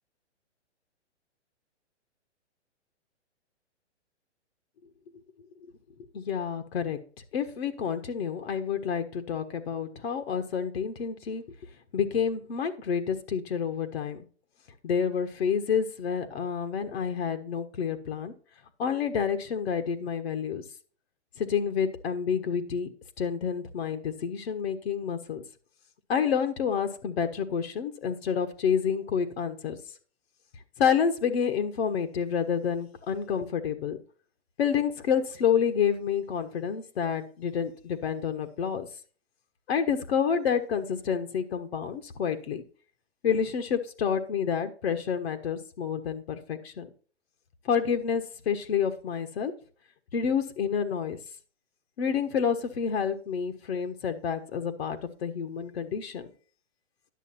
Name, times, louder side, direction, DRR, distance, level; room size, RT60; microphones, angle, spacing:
voice 1, 6.1-7.0 7.3-11.4 11.9-14.2 14.8-18.3 18.8-20.6 21.4-22.9 23.2-25.4 26.1-29.8 30.8-34.0 34.6-38.9 39.7-42.6 43.2-46.9 47.6-49.5 50.1-51.2 52.0-56.3, left 7 dB, 60° left, 7 dB, 1.5 m, -29 dB
11.0 x 6.6 x 4.3 m, 0.39 s
hypercardioid pair, 140°, 35 cm